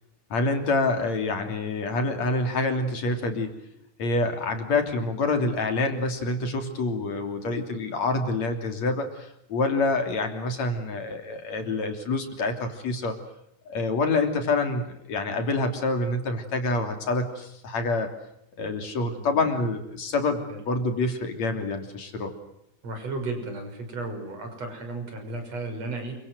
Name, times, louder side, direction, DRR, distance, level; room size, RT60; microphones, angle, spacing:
voice 1, 0.3-3.5 4.0-13.1 13.7-18.1 18.6-22.3, left 3 dB, 65° left, 6 dB, 4.4 m, -27 dB
voice 2, 19.1-19.4 20.5-20.6 22.8-26.2, right 2 dB, 60° right, 4 dB, 7.4 m, -34 dB
28.5 x 25.0 x 8.0 m, 0.76 s
omnidirectional pair, 3.4 m